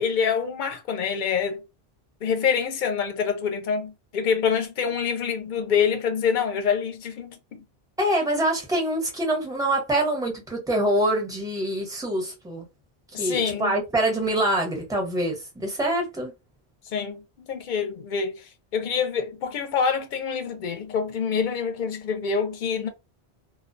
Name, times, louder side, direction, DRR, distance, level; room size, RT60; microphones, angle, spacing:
voice 1, 0.0-1.6 2.2-7.6 13.1-13.8 16.9-22.9, left 6 dB, 55° left, 0.6 m, -26 dB
voice 2, 8.0-12.6 13.1-16.3, right 1 dB, 5° right, 0.7 m, -25 dB
2.2 x 2.2 x 2.5 m
omnidirectional pair, 1.1 m